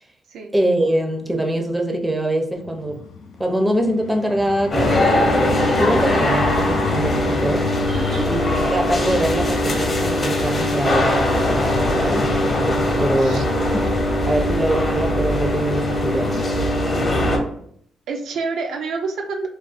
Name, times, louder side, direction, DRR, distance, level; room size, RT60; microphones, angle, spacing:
voice 1, 0.5-3.0 3.4-7.7 8.3-13.5 13.7-13.8 14.3-16.5, right 1 dB, 10° right, 3 dB, 0.4 m, -23 dB
Vehicle, 2.5-11.6 12.2-12.4, left 3 dB, 80° left, 0.4 m, -32 dB
sound 1, 4.7-17.4, left 1 dB, 35° left, 0.7 m, -20 dB
voice 2, 7.9-8.3 13.2-13.4 18.1-19.5, right 4 dB, 75° right, 2 dB, 0.4 m, -28 dB
2.4 x 2.2 x 2.4 m, 0.65 s
cardioid pair, 90°, 0 cm